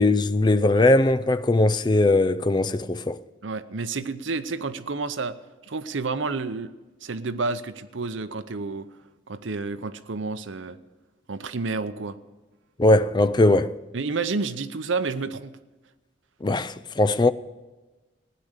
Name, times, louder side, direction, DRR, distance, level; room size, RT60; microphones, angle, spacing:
voice 1, 0.0-3.2 12.8-13.8 16.4-17.3, left 2 dB, 25° left, 0.4 m, -20 dB
voice 2, 3.4-5.4 5.6-6.7 7.0-8.9 9.3-10.8 11.3-12.2 13.9-15.5, right 4 dB, 90° right, 0.8 m, -30 dB
16.0 x 10.0 x 6.6 m
head